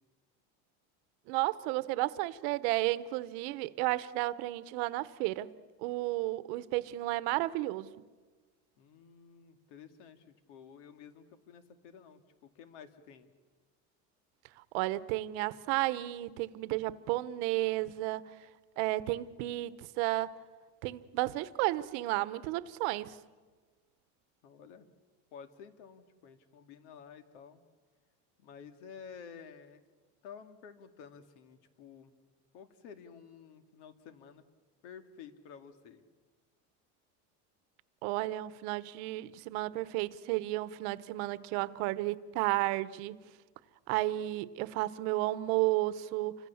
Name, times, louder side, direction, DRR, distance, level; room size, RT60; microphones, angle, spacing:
voice 1, 1.3-5.5 5.8-7.9 14.7-18.2 18.8-20.3 20.8-23.1 38.0-43.2 43.9-46.4, right 17 dB, 65° right, 1.0 m, -32 dB
voice 2, 8.8-13.3 24.4-24.9 25.3-27.6 28.4-29.8 30.2-32.1 32.5-34.4 34.8-36.0, left 7 dB, 85° left, 2.4 m, -52 dB
30.0 x 25.5 x 7.2 m
cardioid pair, 170°, 34 cm